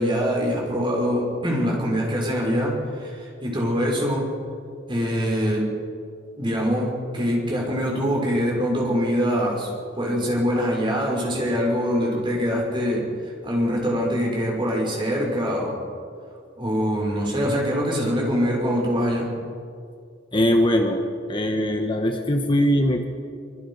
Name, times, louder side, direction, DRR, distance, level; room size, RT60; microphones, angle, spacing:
voice 1, 0.0-4.3 4.9-5.7 6.4-15.8 16.6-19.3, equal, 25° right, -1 dB, 6.4 m, -24 dB
voice 2, 20.3-21.0 21.3-23.0, equal, 25° left, 3 dB, 1.5 m, -21 dB
26.0 x 25.0 x 5.8 m, 2.3 s
head